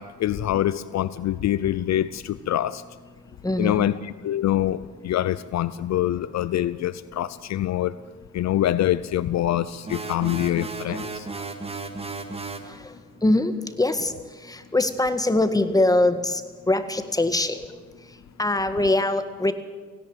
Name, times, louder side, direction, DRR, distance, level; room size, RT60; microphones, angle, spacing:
voice 1, 0.0-2.8 3.6-7.9 8.3-11.3, left 12 dB, 60° left, 16 dB, 0.6 m, -25 dB
voice 2, 3.4-3.9 12.7-12.8 13.2-14.1 14.5-16.4 16.7-17.6 18.4-19.5, left 2 dB, 10° left, 10 dB, 1.8 m, -22 dB
sound 1, 9.9-12.7, right 3 dB, 20° right, 2.1 m, -34 dB
17.5 x 16.5 x 9.1 m, 1.5 s
cardioid pair, 90°, 30 cm